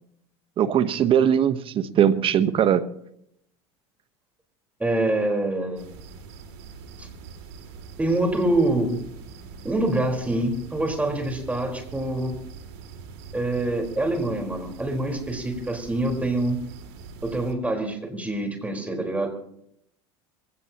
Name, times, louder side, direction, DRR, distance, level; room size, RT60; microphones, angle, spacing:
voice 1, 0.6-2.8, right 9 dB, 40° right, 13 dB, 1.1 m, -20 dB
voice 2, 4.8-5.9 7.0-7.1 8.0-9.0 9.6-12.3 13.3-16.6 17.2-19.3, right 1 dB, 10° right, 3 dB, 4.4 m, -25 dB
sound 1, 5.8-17.5, right 5 dB, 75° right, 2.7 m, -43 dB
23.0 x 17.0 x 3.0 m, 0.73 s
supercardioid pair, 105°, 14 cm